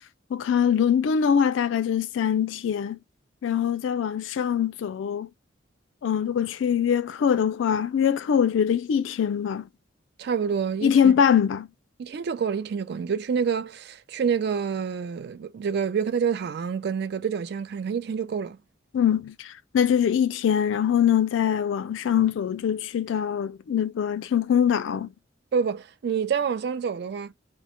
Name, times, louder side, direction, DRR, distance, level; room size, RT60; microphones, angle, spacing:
voice 1, 0.3-3.0 3.4-5.3 6.0-9.7 10.8-11.7 18.9-25.1, left 8 dB, 80° left, 0.3 m, -23 dB
voice 2, 10.2-11.1 12.0-18.6 25.5-27.3, right 6 dB, 60° right, 0.3 m, -27 dB
2.1 x 2.0 x 2.8 m
head